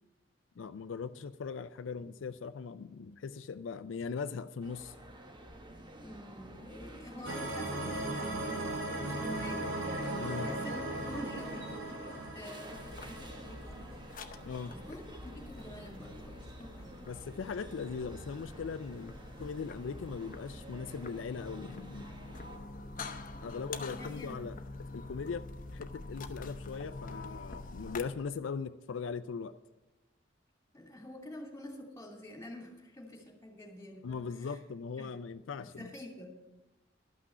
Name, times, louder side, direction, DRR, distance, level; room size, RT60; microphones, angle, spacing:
voice 1, 0.6-4.9 10.2-10.5 14.5-14.7 17.1-22.1 23.4-24.6 24.9-29.5 34.0-35.9, left 5 dB, 75° left, 11 dB, 0.4 m, -40 dB
sound 1, 4.6-22.6, right 1 dB, 25° right, 1.0 m, -50 dB
voice 2, 6.0-14.0 14.7-17.3 23.3-24.5 30.7-34.6 35.0-35.1 35.6-36.3, left 1 dB, 15° left, 0 dB, 2.7 m, -48 dB
sound 2, 7.2-14.3, right 1 dB, 85° right, 2.1 m, -38 dB
sound 3, 12.8-28.0, left 3 dB, 45° left, 0.8 m, -46 dB
12.5 x 6.0 x 8.5 m, 1.1 s
head